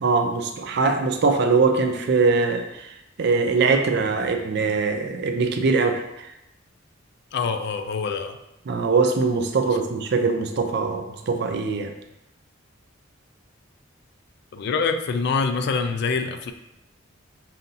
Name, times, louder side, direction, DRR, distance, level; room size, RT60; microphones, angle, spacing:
voice 1, 0.0-2.9 3.2-6.0 8.7-11.9, right 4 dB, 55° right, 6 dB, 0.4 m, -22 dB
voice 2, 7.3-8.4 14.5-16.5, left 5 dB, 55° left, 8 dB, 0.3 m, -25 dB
5.5 x 2.6 x 2.7 m, 0.86 s
head